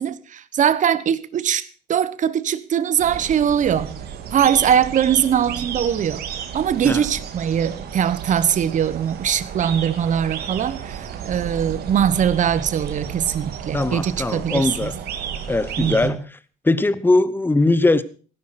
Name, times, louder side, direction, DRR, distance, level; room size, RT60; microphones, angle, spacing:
voice 1, 0.0-3.9 4.3-6.2 6.5-14.9 15.8-16.2, right 9 dB, 45° right, 1.3 m, -21 dB
sound 1, 3.0-16.1, right 8 dB, 70° right, 2.3 m, -32 dB
voice 2, 13.7-14.9 15.5-16.2 16.6-18.0, left 2 dB, 10° left, 1.1 m, -20 dB
17.0 x 11.0 x 5.9 m
cardioid pair, 110°, 17 cm